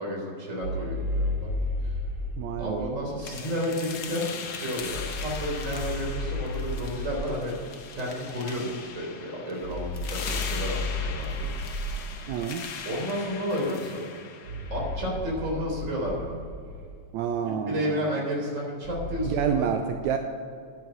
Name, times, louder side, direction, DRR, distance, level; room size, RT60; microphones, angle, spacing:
voice 1, 0.0-1.5 2.6-7.5 7.9-11.4 11.7-11.9 12.9-14.0 14.7-16.4 17.5-19.7, equal, 25° right, -2 dB, 3.8 m, -31 dB
sound 1, 0.6-2.9 4.8-7.3 9.6-12.2 14.4-17.0 18.8-19.5, left 1 dB, 55° right, 2.6 m, -33 dB
voice 2, 2.4-3.0 12.3-12.6 17.1-18.2 19.2-20.2, right 7 dB, 80° right, 5 dB, 2.0 m, -29 dB
sound 2, 3.2-15.2, left 6 dB, 80° left, 0.9 m, -39 dB
10.5 x 9.6 x 6.4 m, 2.2 s
omnidirectional pair, 3.4 m